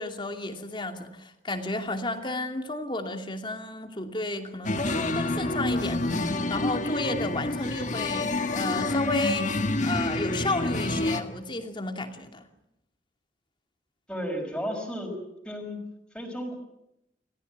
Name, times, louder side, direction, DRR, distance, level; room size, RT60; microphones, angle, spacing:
voice 1, 0.0-12.5, left 2 dB, 30° left, 5 dB, 2.6 m, -32 dB
sound 1, 4.6-11.2, left 2 dB, 45° left, 1.9 m, -28 dB
voice 2, 14.1-15.2 15.4-15.8 16.1-16.6, equal, 5° left, 2 dB, 5.8 m, -33 dB
29.5 x 15.0 x 9.2 m, 0.84 s
head